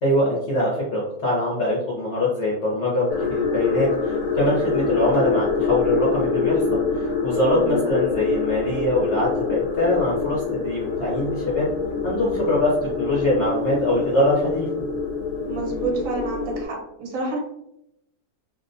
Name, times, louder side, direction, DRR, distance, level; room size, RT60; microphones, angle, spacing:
voice 1, 0.0-6.8 7.2-11.7 12.0-14.7, left 1 dB, 55° left, -6 dB, 0.9 m, -23 dB
sound 1, 3.1-16.6, left 5 dB, 80° left, 1.1 m, -25 dB
voice 2, 7.4-7.9 15.5-17.4, right 3 dB, 70° right, -1 dB, 1.1 m, -29 dB
2.6 x 2.1 x 2.5 m, 0.81 s
omnidirectional pair, 1.6 m